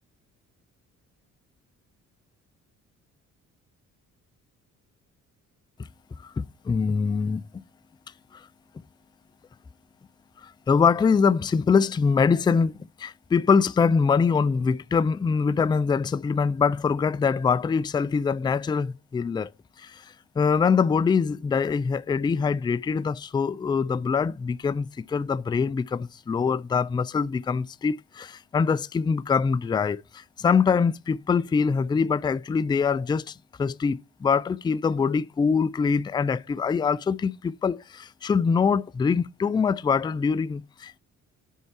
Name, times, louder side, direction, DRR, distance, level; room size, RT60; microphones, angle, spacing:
voice 1, 6.2-7.4 8.3-8.5 10.4-19.5 19.8-20.1 20.4-41.0, left 5 dB, 15° left, 0.3 m, -24 dB
5.5 x 4.6 x 5.9 m
cardioid pair, 90°, 30 cm